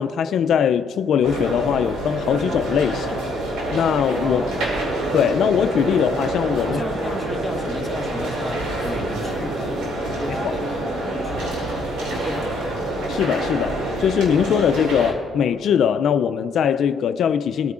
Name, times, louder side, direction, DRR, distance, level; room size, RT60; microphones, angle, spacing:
voice 1, 0.0-3.2 3.7-4.4 5.1-6.8 10.4-10.5 13.1-17.7, left 8 dB, 70° left, 0.3 m, -21 dB
sound 1, 1.2-15.1, right 1 dB, 90° right, 2.4 m, -26 dB
voice 2, 4.2-4.8 6.6-12.8, left 1 dB, 5° left, 1.1 m, -34 dB
21.0 x 9.5 x 2.4 m
cardioid pair, 90°, 0 cm